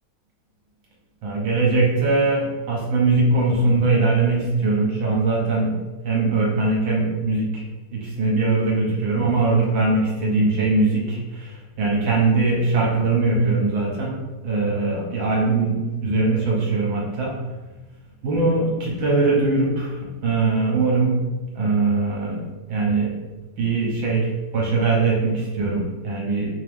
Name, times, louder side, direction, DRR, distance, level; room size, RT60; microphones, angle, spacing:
voice 1, 1.2-5.8 6.0-7.6 7.9-14.1 14.4-17.3 18.2-21.2 21.5-22.4 22.7-23.1 23.6-26.5, right 3 dB, 70° right, -3 dB, 1.6 m, -21 dB
3.7 x 2.9 x 3.3 m, 1.2 s
omnidirectional pair, 2.4 m